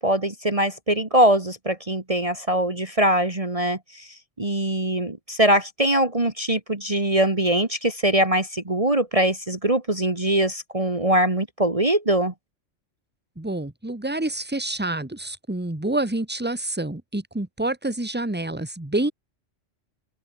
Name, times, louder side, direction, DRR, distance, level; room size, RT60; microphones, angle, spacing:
voice 1, 0.0-4.1 4.4-12.3, right 1 dB, 25° right, 2.2 m, -22 dB
voice 2, 13.4-19.1, right 2 dB, 10° right, 1.7 m, -27 dB
open air
omnidirectional pair, 1.3 m